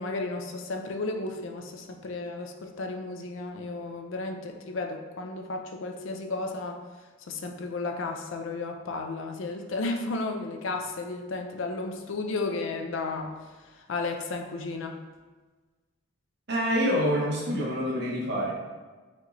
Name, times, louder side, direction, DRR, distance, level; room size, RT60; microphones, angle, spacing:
voice 1, 0.0-6.8 7.3-13.5 13.7-15.0, left 3 dB, 70° left, 4 dB, 0.4 m, -33 dB
voice 2, 16.5-18.5, equal, 55° right, -3 dB, 0.9 m, -26 dB
5.1 x 3.0 x 2.6 m, 1.3 s
head